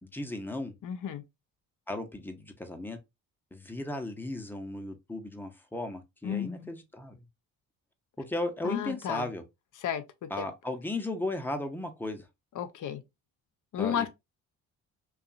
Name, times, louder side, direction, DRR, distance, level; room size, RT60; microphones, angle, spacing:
voice 1, 0.0-0.8 1.9-3.0 3.5-7.2 8.2-9.4 10.3-12.3 13.8-14.1, left 2 dB, 5° left, 0.7 m, -35 dB
voice 2, 0.8-1.2 6.2-6.7 8.6-9.3 9.8-10.5 12.5-13.0 13.7-14.1, left 9 dB, 50° left, 0.6 m, -33 dB
2.7 x 2.3 x 2.5 m
supercardioid pair, 60°, 39 cm